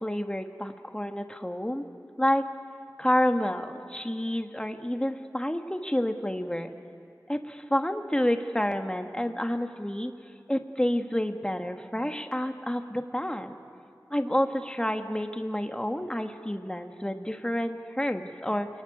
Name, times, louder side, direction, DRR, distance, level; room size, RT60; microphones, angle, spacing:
voice 1, 0.0-1.8 2.2-2.4 3.0-6.7 7.3-10.1 10.5-13.5 14.1-18.7, left 1 dB, 10° left, 6 dB, 1.5 m, -29 dB
29.0 x 21.5 x 9.7 m, 2.5 s
wide cardioid pair, 45°, 7 cm